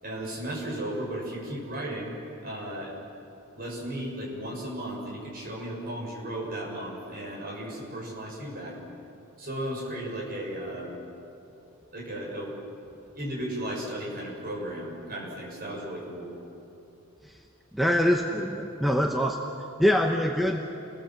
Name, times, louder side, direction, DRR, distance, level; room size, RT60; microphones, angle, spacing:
voice 1, 0.0-2.9 3.5-8.8 9.4-10.9 11.9-12.5 13.1-16.3, right 1 dB, 40° right, -3 dB, 6.8 m, -35 dB
voice 2, 17.7-19.4 19.8-20.6, equal, ahead, 2 dB, 0.9 m, -24 dB
30.0 x 21.0 x 7.5 m, 2.9 s
head